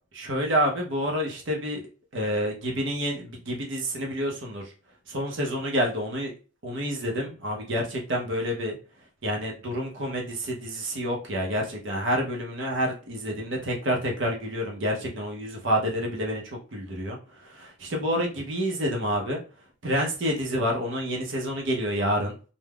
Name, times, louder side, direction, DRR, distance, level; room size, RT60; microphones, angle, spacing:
voice 1, 0.1-1.8 2.1-4.7 5.1-6.3 6.6-8.8 9.2-19.4 19.8-22.4, equal, 65° right, 0 dB, 0.6 m, -28 dB
3.4 x 2.1 x 2.2 m, 0.36 s
head